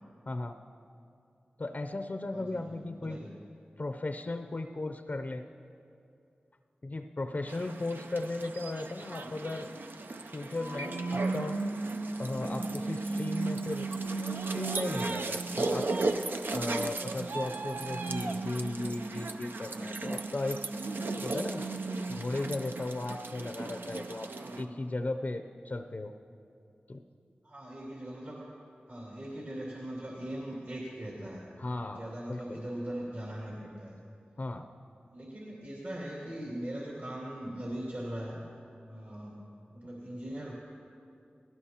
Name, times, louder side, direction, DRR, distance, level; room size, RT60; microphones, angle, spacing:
voice 1, 0.3-0.6 1.6-3.2 3.8-5.4 6.8-9.7 10.3-11.6 12.2-13.9 14.3-15.9 16.5-20.6 21.2-21.6 22.1-24.3 24.6-26.1 26.9-27.0 31.6-32.6 34.4-34.7, left 2 dB, 50° left, 7 dB, 0.6 m, -36 dB
voice 2, 2.3-3.3 9.0-9.3 24.3-24.8 27.4-28.5 28.9-31.4 31.9-34.0 35.1-38.4 38.9-40.5, right 1 dB, 60° right, -4 dB, 2.4 m, -40 dB
sound 1, 7.5-24.6, right 3 dB, 75° right, 0.6 m, -35 dB
sound 2, 10.5-11.3 14.1-14.2, left 4 dB, 15° right, 0.7 m, -48 dB
17.0 x 17.0 x 2.9 m, 2.6 s
cardioid pair, 40°, 4 cm